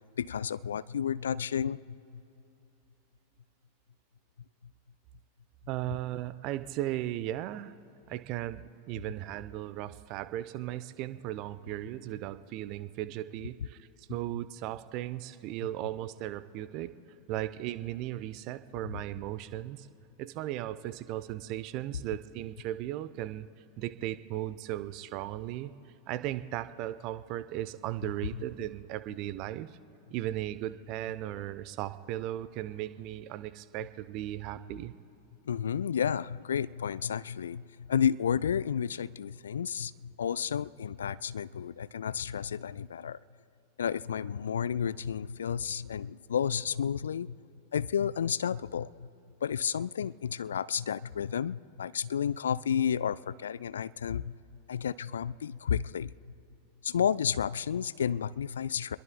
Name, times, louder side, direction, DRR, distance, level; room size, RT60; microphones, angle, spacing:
voice 1, 0.2-1.8 18.8-18.9 35.5-43.2 43.8-47.4 47.7-49.1 49.4-54.3 54.7-56.1 56.8-59.0, left 8 dB, 65° left, 18 dB, 0.3 m, -31 dB
voice 2, 5.7-7.7 8.1-16.9 17.3-19.9 20.2-23.5 23.8-25.7 26.1-29.7 30.1-34.9, right 14 dB, 40° right, 14 dB, 0.6 m, -36 dB
29.0 x 21.5 x 2.2 m, 2.8 s
figure-of-eight pair, 90°, 0 cm